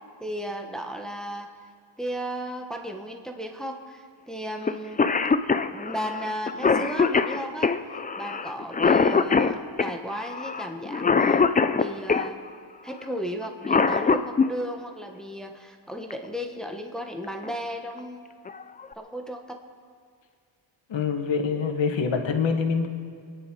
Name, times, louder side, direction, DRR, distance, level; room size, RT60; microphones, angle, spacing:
voice 1, 0.2-1.5 2.0-5.0 5.7-7.8 8.2-12.4 12.8-18.3 19.0-19.6, equal, ahead, 3 dB, 1.2 m, -35 dB
Cough, 4.7-4.8 5.0-12.3 13.4-14.5 16.1-16.2 17.2-17.5 18.0-18.1 18.5-18.9, left 5 dB, 20° left, 0.4 m, -23 dB
voice 2, 20.9-22.9, left 5 dB, 65° left, 4 dB, 1.9 m, -25 dB
26.0 x 10.5 x 4.6 m, 2.1 s
wide cardioid pair, 130°, 49 cm